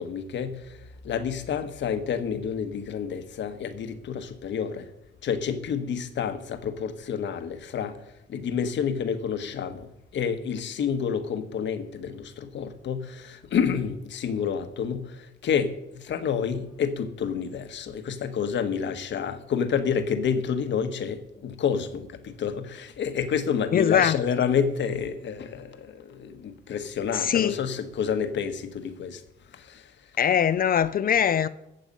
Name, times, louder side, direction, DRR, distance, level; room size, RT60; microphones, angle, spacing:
voice 1, 0.0-4.9 5.2-8.0 8.3-29.2 29.5-30.1, left 7 dB, 65° left, 1.4 m, -29 dB
voice 2, 23.7-24.2 27.1-27.6 30.2-31.5, left 8 dB, 45° left, 0.5 m, -22 dB
15.0 x 7.9 x 5.4 m
cardioid pair, 90°, 20 cm